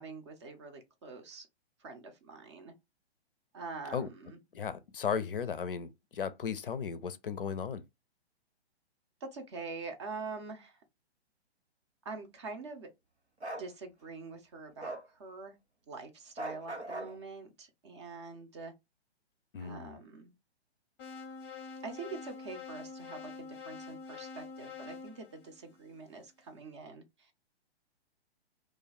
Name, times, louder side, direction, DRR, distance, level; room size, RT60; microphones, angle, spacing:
voice 1, 0.0-1.5 1.8-2.7 3.5-4.4 9.2-10.8 12.0-12.9 13.5-15.5 15.9-18.7 19.6-20.3 21.8-27.3, right 4 dB, 25° right, 0.6 m, -45 dB
voice 2, 4.5-7.8 19.5-20.0, left 7 dB, 55° left, 0.5 m, -36 dB
Bark, 13.4-13.7 14.8-15.0 16.4-17.1, right 1 dB, 90° right, 1.0 m, -39 dB
sound 1, 21.0-26.1, left 4 dB, 20° left, 0.7 m, -46 dB
2.5 x 2.2 x 4.0 m
figure-of-eight pair, 125°, 33 cm